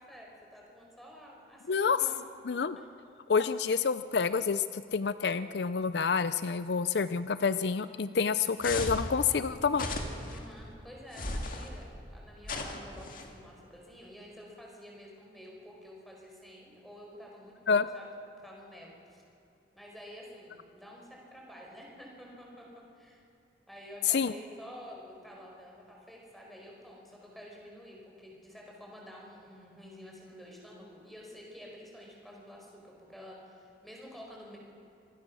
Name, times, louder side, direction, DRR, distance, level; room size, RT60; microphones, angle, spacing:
voice 1, 0.0-2.1 2.7-2.8 10.3-18.1 18.4-19.2 19.7-23.2 23.7-34.6, equal, ahead, -2 dB, 4.9 m, -50 dB
voice 2, 3.3-9.9 17.7-17.9 24.1-24.3, left 5 dB, 65° left, 13 dB, 0.5 m, -28 dB
sound 1, 8.6-9.1 9.7-10.4 11.1-11.7 12.4-13.3, left 2 dB, 45° left, 2.2 m, -35 dB
26.5 x 19.5 x 6.3 m, 2.8 s
head